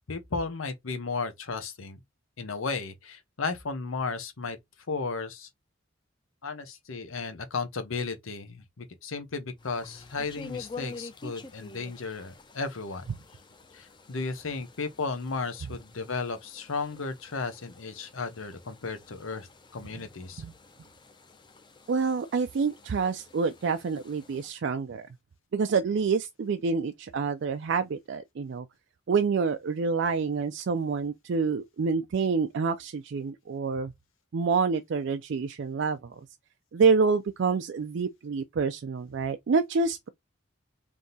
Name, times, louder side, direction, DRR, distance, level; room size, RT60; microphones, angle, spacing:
voice 1, 0.0-2.0 2.4-4.6 4.9-5.5 6.4-13.1 13.7-20.4, left 4 dB, 85° left, 0.9 m, -34 dB
sound 1, 9.6-24.5, left 3 dB, 25° left, 0.5 m, -48 dB
voice 2, 21.9-25.1 25.5-28.7 29.1-33.9 34.3-36.3 36.7-40.1, right 5 dB, 60° right, 0.4 m, -27 dB
3.6 x 2.8 x 3.9 m
head